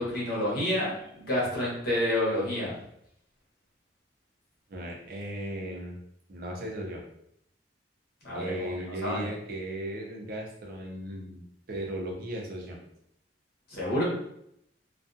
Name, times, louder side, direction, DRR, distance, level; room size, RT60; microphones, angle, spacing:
voice 1, 0.0-2.7 8.2-8.7 9.0-9.2 13.7-14.0, left 1 dB, 55° left, -6 dB, 1.0 m, -29 dB
voice 2, 4.7-6.0 6.3-7.0 8.3-11.4 11.7-12.8, right 1 dB, 55° right, 1 dB, 0.6 m, -36 dB
2.4 x 2.3 x 2.6 m, 0.75 s
head